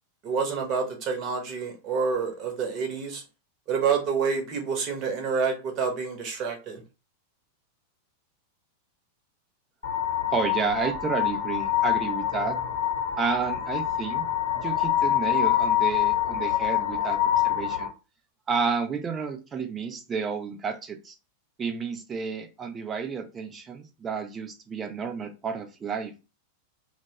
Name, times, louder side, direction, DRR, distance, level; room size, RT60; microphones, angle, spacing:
voice 1, 0.2-3.2 3.7-6.8, right 5 dB, 35° right, 0.9 m, -28 dB
sound 1, 9.8-17.9, left 11 dB, 60° left, 0.8 m, -26 dB
voice 2, 10.3-12.6 13.2-14.2 14.5-17.9 18.5-21.1 21.6-26.1, right 5 dB, 20° right, 0.5 m, -31 dB
3.0 x 2.2 x 2.8 m
figure-of-eight pair, 90°, 0 cm